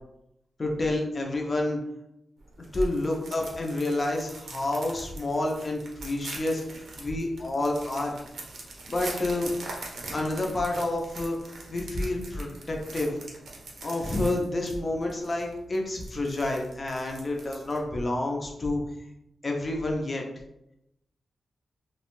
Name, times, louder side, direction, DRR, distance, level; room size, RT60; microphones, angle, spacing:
voice 1, 0.6-1.8 2.7-8.2 8.9-9.5 10.1-11.4 11.7-13.1 13.8-18.8 19.4-20.2, left 2 dB, 30° left, 0 dB, 0.3 m, -29 dB
sound 1, 2.4-17.9, right 2 dB, 75° right, 0.5 m, -43 dB
2.5 x 2.1 x 2.9 m, 0.84 s
wide cardioid pair, 160°, 0 cm